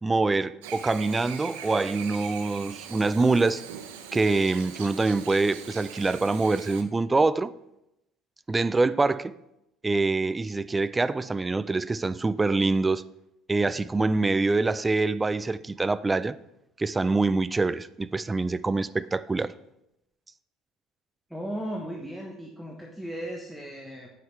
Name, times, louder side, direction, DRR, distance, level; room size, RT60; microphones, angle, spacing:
voice 1, 0.0-3.6 4.1-7.5 8.5-9.3 9.8-13.0 13.5-16.3 16.8-19.5, right 3 dB, 20° right, 0.3 m, -25 dB
Chirp tweet / Buzz, 0.6-6.8, right 8 dB, 90° right, 0.6 m, -41 dB
voice 2, 21.3-24.1, right 1 dB, 5° right, 1.1 m, -36 dB
8.8 x 5.6 x 3.2 m
supercardioid pair, 85°, 0 cm